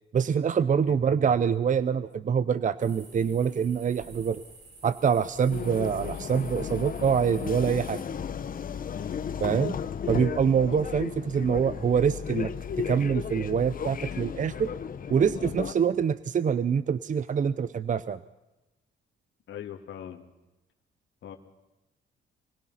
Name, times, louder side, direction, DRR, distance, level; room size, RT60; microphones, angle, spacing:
voice 1, 0.1-4.4 4.8-8.0 9.4-9.8 10.1-14.7 15.1-18.2, right 7 dB, 40° right, 16 dB, 0.7 m, -25 dB
sound 1, 2.8-8.0, right 3 dB, 60° right, 7.6 m, -51 dB
sound 2, 5.5-15.7, left 7 dB, 45° left, 1.1 m, -34 dB
voice 2, 8.9-9.4 19.5-20.2 21.2-21.4, left 9 dB, 70° left, 3 dB, 2.8 m, -41 dB
25.0 x 20.0 x 5.8 m, 1.0 s
cardioid pair, 90°, 20 cm